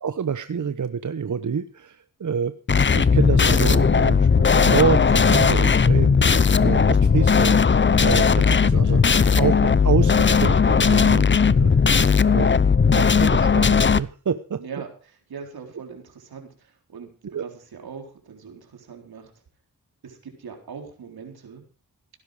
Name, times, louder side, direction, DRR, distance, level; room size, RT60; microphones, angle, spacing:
voice 1, 0.0-9.0 9.4-11.7 12.3-12.5 12.9-14.6 17.3-17.5, right 7 dB, 55° right, 11 dB, 1.0 m, -27 dB
sound 1, 2.7-14.0, left 5 dB, 30° left, 0.7 m, -17 dB
voice 2, 14.6-19.3 20.0-21.6, right 6 dB, 85° right, 3 dB, 4.0 m, -41 dB
17.0 x 10.5 x 4.9 m, 0.37 s
cardioid pair, 55°, 36 cm